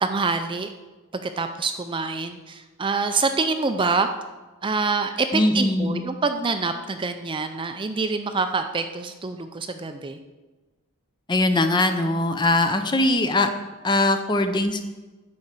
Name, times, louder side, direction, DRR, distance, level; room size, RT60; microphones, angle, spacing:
voice 1, 0.0-0.7 1.1-4.1 4.6-10.2, right 4 dB, 20° right, 7 dB, 0.4 m, -26 dB
voice 2, 5.3-6.0 11.3-13.5 13.8-14.8, left 2 dB, 20° left, 8 dB, 0.6 m, -21 dB
9.5 x 4.8 x 6.7 m, 1.2 s
head